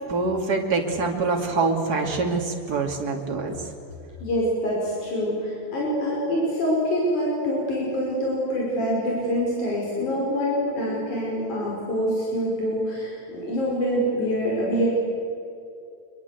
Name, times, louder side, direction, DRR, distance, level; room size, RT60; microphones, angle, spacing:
voice 1, 0.1-3.7, right 3 dB, 35° right, 2 dB, 3.0 m, -25 dB
voice 2, 4.2-14.9, equal, 85° left, -4 dB, 6.7 m, -25 dB
26.0 x 22.5 x 8.4 m, 2.6 s
omnidirectional pair, 3.4 m